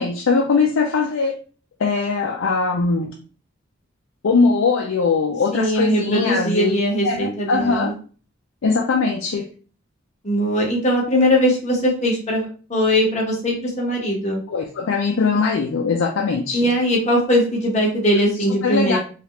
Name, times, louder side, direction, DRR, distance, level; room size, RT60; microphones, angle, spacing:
voice 1, 0.0-1.3 1.8-3.1 4.2-7.9 8.6-9.5 14.5-16.7 18.6-19.0, left 4 dB, 85° left, 1 dB, 0.4 m, -21 dB
voice 2, 5.5-7.9 10.2-14.4 16.5-19.0, equal, 35° left, -2 dB, 0.9 m, -20 dB
3.2 x 2.4 x 2.9 m, 0.39 s
head